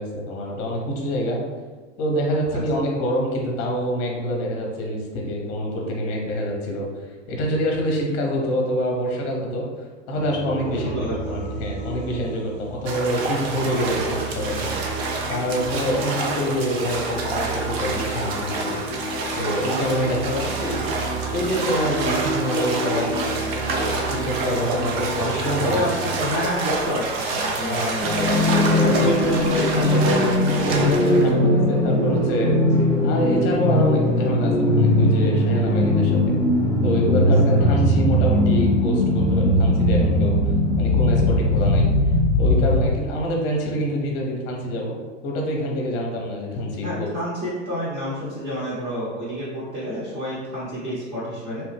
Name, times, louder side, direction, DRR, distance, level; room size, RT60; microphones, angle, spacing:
voice 1, 0.0-1.4 2.0-6.9 7.3-9.7 10.1-14.8 15.3-18.8 19.4-20.2 20.6-20.8 21.3-23.4 23.9-25.8 27.6-27.9 28.8-29.1 30.6-36.4 36.8-40.4 40.8-41.9 42.4-45.0 45.2-47.1, equal, 35° left, 0 dB, 0.8 m, -26 dB
sound 1, 10.1-26.3, right 2 dB, 10° right, 0.5 m, -32 dB
voice 2, 10.8-11.4 20.0-20.5 25.6-31.4 37.1-37.7 46.8-51.6, equal, 25° right, -9 dB, 0.9 m, -29 dB
sound 2, 12.9-31.3, right 3 dB, 50° right, 0.6 m, -28 dB
sound 3, 28.0-43.0, left 1 dB, 75° right, 1.4 m, -19 dB
3.0 x 2.0 x 3.2 m, 1.3 s
hypercardioid pair, 115°, 38 cm